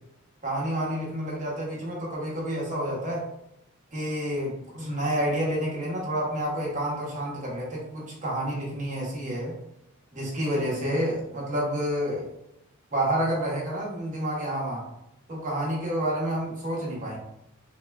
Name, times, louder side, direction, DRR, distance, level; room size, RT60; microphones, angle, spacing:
voice 1, 0.4-3.2 3.9-9.5 10.1-12.2 12.9-14.8 15.3-17.2, equal, 35° right, -4 dB, 0.9 m, -29 dB
3.5 x 2.2 x 2.3 m, 0.84 s
head